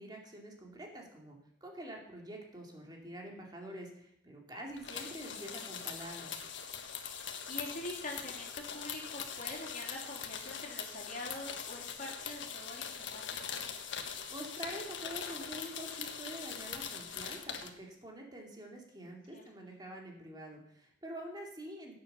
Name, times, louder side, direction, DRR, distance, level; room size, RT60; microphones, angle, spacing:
voice 1, 0.0-1.4 1.6-6.4 14.3-21.9, right 1 dB, 25° right, 0 dB, 2.6 m, -46 dB
sound 1, 4.8-17.7, left 7 dB, 80° left, 1.5 m, -42 dB
voice 2, 5.0-5.7 7.1-13.6 19.0-19.4, left 2 dB, 45° left, -1 dB, 3.5 m, -45 dB
16.5 x 7.7 x 6.8 m, 0.73 s
head